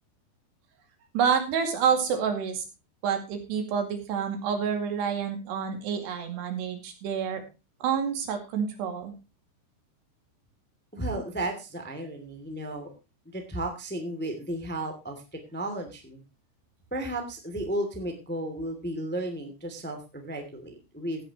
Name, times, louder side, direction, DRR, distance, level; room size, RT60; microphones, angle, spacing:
voice 1, 1.1-2.6 3.0-7.4 7.8-9.1, right 7 dB, 80° right, 5 dB, 4.4 m, -28 dB
voice 2, 10.9-12.9 13.2-15.2 15.5-16.2 16.9-21.2, right 1 dB, 5° left, 5 dB, 1.4 m, -34 dB
16.0 x 10.0 x 3.0 m, 0.28 s
omnidirectional pair, 4.7 m